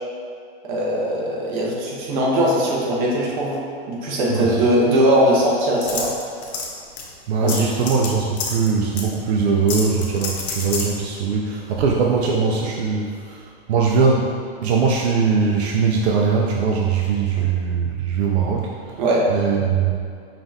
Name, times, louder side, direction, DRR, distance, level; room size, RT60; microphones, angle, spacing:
voice 1, 0.6-3.6 3.9-6.1 7.4-7.8 19.0-19.3, right 1 dB, 45° right, -4 dB, 0.9 m, -20 dB
voice 2, 4.3-5.0 7.3-14.3 14.6-19.0 19.3-19.9, right 5 dB, 80° right, -1 dB, 0.5 m, -21 dB
sound 1, 5.8-6.7 7.0-7.1 7.5-8.1 8.4-8.7 9.0-9.1 9.7-10.9, left 5 dB, 80° left, 0.8 m, -27 dB
5.3 x 2.4 x 2.7 m, 2.3 s
supercardioid pair, 155°, 32 cm